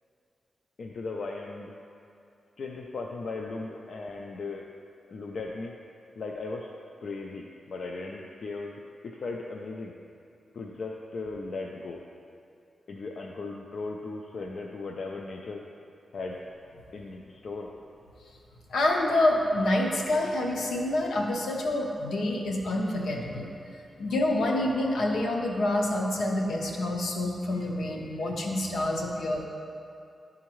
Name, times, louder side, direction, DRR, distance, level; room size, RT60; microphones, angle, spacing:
voice 1, 0.8-1.8 2.6-4.7 5.1-5.7 6.2-6.7 7.0-9.9 10.5-12.0 12.9-15.6 16.1-16.4 16.9-17.7, left 3 dB, 65° left, 0 dB, 0.4 m, -37 dB
voice 2, 18.7-23.5 24.0-29.4, left 1 dB, 85° left, 0 dB, 0.7 m, -27 dB
10.5 x 3.6 x 3.0 m, 2.5 s
wide cardioid pair, 95°, 0 cm